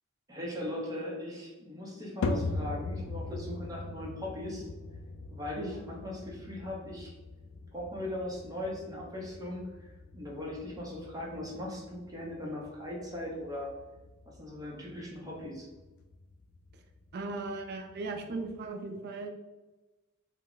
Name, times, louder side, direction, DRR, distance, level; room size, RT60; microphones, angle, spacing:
voice 1, 0.3-4.7 5.3-7.1 7.7-9.7 10.1-13.7 14.3-15.7, left 1 dB, 20° right, -3 dB, 0.6 m, -39 dB
sound 1, 2.2-18.7, left 2 dB, 75° left, 0.3 m, -41 dB
voice 2, 17.1-19.3, right 3 dB, 50° right, 4 dB, 0.3 m, -37 dB
2.2 x 2.0 x 3.7 m, 1.1 s
head